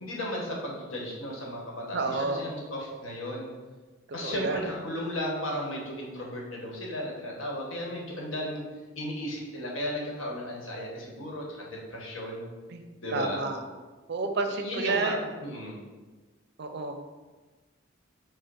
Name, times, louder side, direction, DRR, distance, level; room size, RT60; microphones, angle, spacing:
voice 1, 0.0-3.5 4.1-8.6 9.0-12.5 13.0-13.4 14.5-15.1 15.4-15.8, left 1 dB, 80° left, -2 dB, 1.1 m, -35 dB
voice 2, 1.9-2.4 4.2-4.6 12.7-12.8 13.1-13.6 14.1-15.3 16.6-17.0, right 3 dB, 55° right, 6 dB, 0.4 m, -30 dB
4.8 x 2.1 x 4.7 m, 1.3 s
head